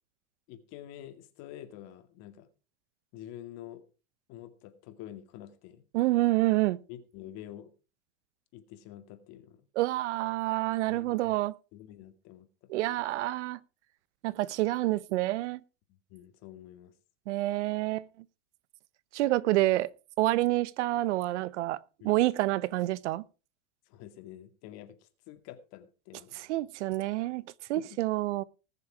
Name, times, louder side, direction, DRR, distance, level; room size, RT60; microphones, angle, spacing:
voice 1, 0.5-2.5 3.1-3.9 4.3-5.8 6.9-7.7 8.5-9.6 10.9-11.4 11.7-12.5 12.9-13.1 15.9-16.9 22.0-22.1 23.9-26.5 27.7-28.0, left 12 dB, 45° left, 2.2 m, -47 dB
voice 2, 5.9-6.8 9.8-11.5 12.7-13.6 14.2-15.6 17.3-18.1 19.1-19.9 20.2-23.2 26.4-28.4, right 17 dB, 75° right, 0.9 m, -28 dB
19.5 x 6.8 x 4.7 m
supercardioid pair, 145°, 36 cm